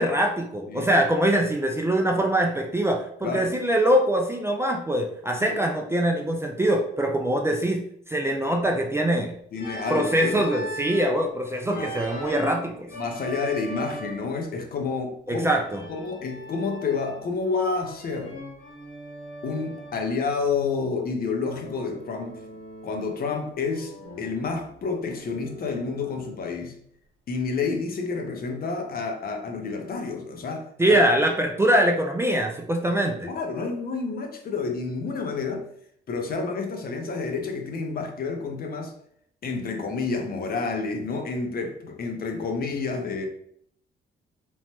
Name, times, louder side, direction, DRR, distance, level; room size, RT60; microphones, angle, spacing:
voice 1, 0.0-9.3 9.9-12.9 15.3-15.8 30.8-33.3, right 1 dB, 15° right, 2 dB, 0.3 m, -23 dB
voice 2, 3.2-3.5 5.4-5.6 9.5-10.4 11.7-11.9 12.9-15.5 15.9-18.4 19.4-22.4 22.8-26.7 27.3-31.0 33.2-35.7 36.1-38.9 39.4-43.3, left 4 dB, 50° left, 4 dB, 0.6 m, -29 dB
Organ, 9.5-11.2 11.7-14.4 15.6-17.4 17.7-20.0 21.6-23.4 23.7-26.4, right 1 dB, 85° left, 1.3 m, -39 dB
3.0 x 2.1 x 2.9 m, 0.68 s
cardioid pair, 90°, 20 cm